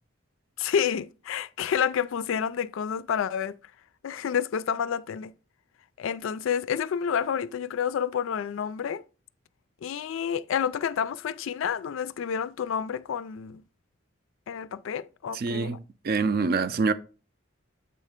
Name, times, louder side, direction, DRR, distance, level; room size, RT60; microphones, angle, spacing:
voice 1, 0.6-3.6 4.0-5.3 6.0-9.0 9.8-13.6 14.5-15.8, left 7 dB, 75° left, 0.3 m, -29 dB
voice 2, 15.3-16.9, right 4 dB, 50° right, 0.4 m, -26 dB
7.8 x 3.2 x 5.1 m
head